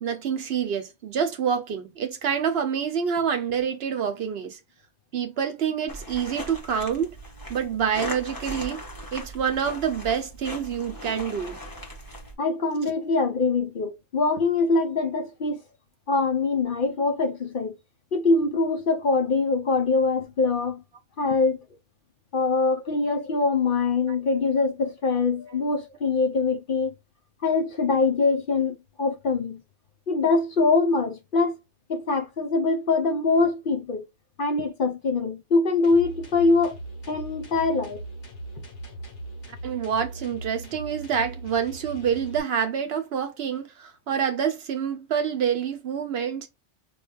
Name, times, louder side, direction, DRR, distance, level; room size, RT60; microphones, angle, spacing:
voice 1, 0.0-4.6 5.1-7.2 7.5-8.8 9.1-11.6 12.8-12.9 26.4-26.6 39.6-46.5, right 7 dB, 65° right, 0.8 m, -27 dB
sound 1, 5.9-12.3, equal, 20° left, 0.8 m, -38 dB
voice 2, 12.4-15.6 16.1-17.7 18.1-20.8 21.2-21.6 22.3-26.9 27.4-29.6 30.1-31.6 31.9-34.0 34.4-36.8 37.1-38.0, left 3 dB, 55° left, 0.8 m, -23 dB
sound 2, 35.8-42.4, right 2 dB, 90° left, 1.4 m, -39 dB
5.0 x 2.3 x 2.3 m
omnidirectional pair, 1.2 m